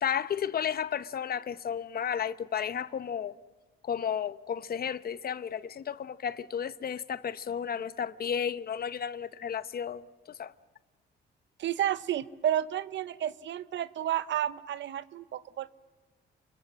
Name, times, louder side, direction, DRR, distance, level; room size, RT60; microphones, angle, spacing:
voice 1, 0.0-3.3 3.8-10.5, left 8 dB, 50° left, 0.9 m, -33 dB
voice 2, 11.6-15.7, right 11 dB, 70° right, 0.9 m, -31 dB
28.5 x 23.0 x 7.6 m
cardioid pair, 90°, 20 cm